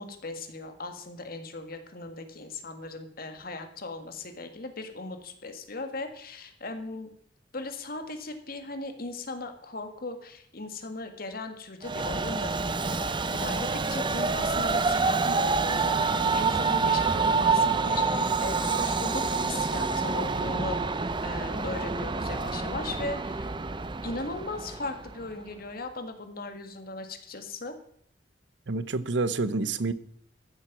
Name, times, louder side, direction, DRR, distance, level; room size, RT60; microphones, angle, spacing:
voice 1, 0.0-7.1 7.5-23.5 24.0-27.7, left 2 dB, 55° left, 1.8 m, -38 dB
Train, 11.8-25.3, right 4 dB, 25° right, 0.7 m, -27 dB
voice 2, 28.7-29.9, right 3 dB, 75° right, 0.8 m, -28 dB
14.5 x 7.6 x 6.0 m
head